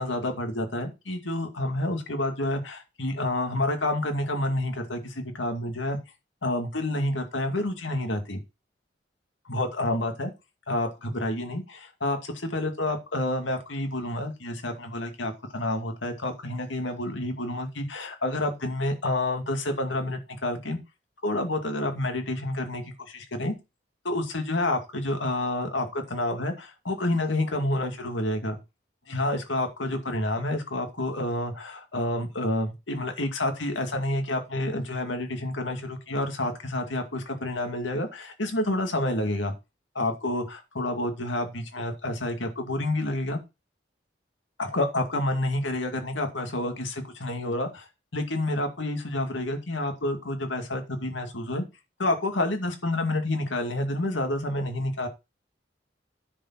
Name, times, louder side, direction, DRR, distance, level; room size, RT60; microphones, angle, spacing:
voice 1, 0.0-6.0 6.4-8.4 9.5-10.3 10.7-20.8 21.2-23.5 24.0-28.6 29.1-39.5 39.9-43.4 44.6-51.6 52.0-55.1, left 1 dB, 90° left, 5 dB, 2.3 m, -29 dB
10.0 x 5.3 x 5.8 m, 0.26 s
head